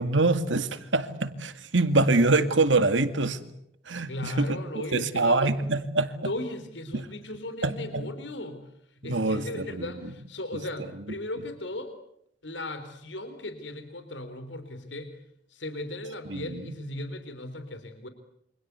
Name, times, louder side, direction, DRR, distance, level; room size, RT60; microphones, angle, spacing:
voice 1, 0.0-3.4 3.9-4.6 4.9-6.3 6.9-7.1 7.6-8.1 9.0-9.9 16.3-16.6, right 3 dB, 90° right, 11 dB, 2.1 m, -25 dB
voice 2, 4.1-5.5 6.2-8.6 9.0-11.9 12.4-15.1 15.5-18.1, left 1 dB, 80° left, 9 dB, 3.6 m, -36 dB
28.5 x 25.5 x 8.2 m, 0.76 s
head